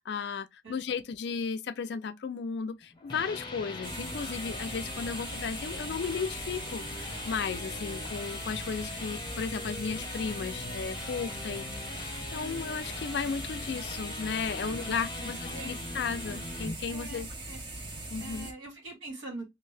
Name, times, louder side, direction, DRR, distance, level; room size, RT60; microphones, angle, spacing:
voice 1, 0.0-17.3 18.1-18.5, left 5 dB, 55° left, 0.3 m, -35 dB
voice 2, 0.6-1.0 14.6-15.7 16.9-17.6 18.2-19.4, right 2 dB, 80° right, 1.7 m, -44 dB
sound 1, 2.8-16.7, left 3 dB, 25° left, 0.7 m, -41 dB
sound 2, 3.8-18.5, right 2 dB, 25° right, 0.5 m, -41 dB
2.7 x 2.6 x 3.2 m
head